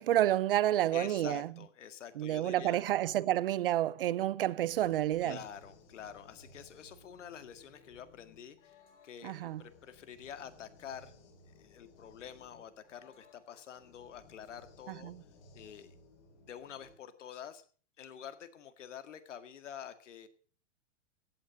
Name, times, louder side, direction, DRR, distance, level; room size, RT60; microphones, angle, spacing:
voice 1, 0.0-1.5 2.2-5.4 9.2-9.6 14.9-15.2, right 13 dB, 50° right, 0.6 m, -29 dB
voice 2, 0.9-2.8 5.2-8.8 9.0-11.1 11.5-15.1 15.5-16.0 16.5-17.6 18.0-20.3, left 8 dB, 80° left, 2.0 m, -47 dB
sound 1, 4.7-16.9, left 3 dB, 40° left, 4.1 m, -60 dB
16.0 x 9.0 x 6.4 m
supercardioid pair, 170°, 36 cm